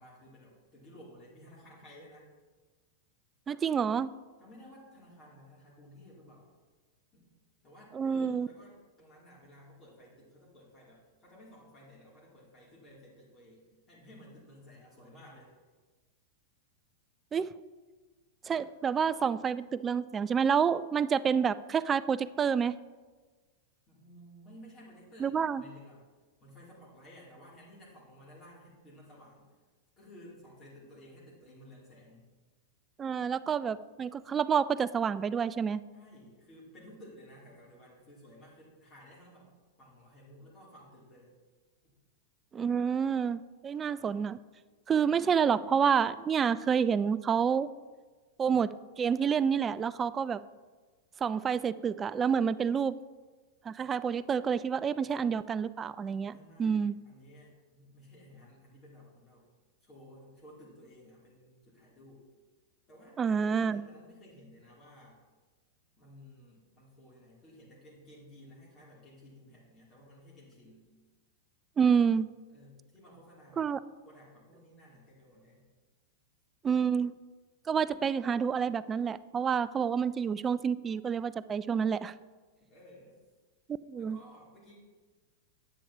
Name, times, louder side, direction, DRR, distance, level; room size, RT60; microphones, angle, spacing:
voice 1, 0.0-2.3 4.4-6.5 7.1-7.3 7.6-15.5 23.9-26.0 26.4-29.5 30.0-32.2 35.9-39.5 39.8-41.3 41.8-41.9 56.2-59.4 59.8-62.3 62.9-65.2 65.9-70.9 72.5-73.7 74.0-75.6 82.6-83.2 84.0-84.7, equal, 25° left, -6 dB, 2.7 m, -54 dB
voice 2, 3.5-4.1 7.9-8.5 17.3-17.5 18.5-22.7 25.2-25.6 33.0-35.8 42.5-44.4 44.9-47.7 48.4-48.7 49.0-50.4 51.2-53.0 53.7-56.3 56.6-57.0 63.2-63.8 71.8-72.3 73.6-73.8 76.6-77.1 77.7-82.1 83.9-84.2, right 7 dB, 20° right, 16 dB, 0.3 m, -28 dB
10.0 x 8.5 x 2.8 m, 1.4 s
figure-of-eight pair, 95°, 0 cm